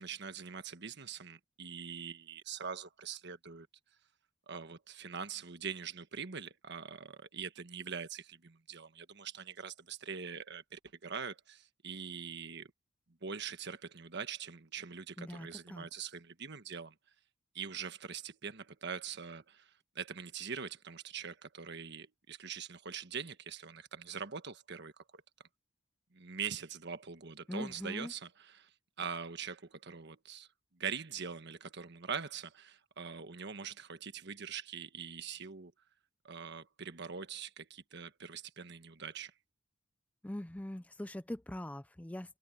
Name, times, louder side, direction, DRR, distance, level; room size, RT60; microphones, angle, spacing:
voice 1, 0.0-3.7 4.5-12.7 13.2-17.0 17.5-25.2 26.1-30.5 30.7-35.7 36.2-39.3, right 6 dB, 60° right, 1.4 m, -43 dB
voice 2, 15.2-15.9 27.5-28.1 40.2-42.4, left 1 dB, 5° left, 0.4 m, -42 dB
head